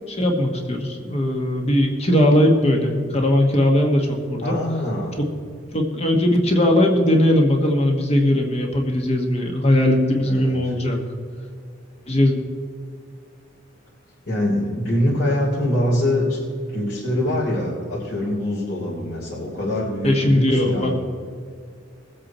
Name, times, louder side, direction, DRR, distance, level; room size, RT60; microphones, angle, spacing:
voice 1, 0.1-4.5 5.2-5.3 5.7-11.0 12.1-12.3 20.0-20.9, left 1 dB, 30° left, 2 dB, 1.3 m, -19 dB
voice 2, 4.4-5.1 10.2-10.7 14.3-16.4 16.7-20.9, left 1 dB, 50° left, -8 dB, 3.3 m, -24 dB
20.5 x 8.0 x 4.3 m, 2.2 s
head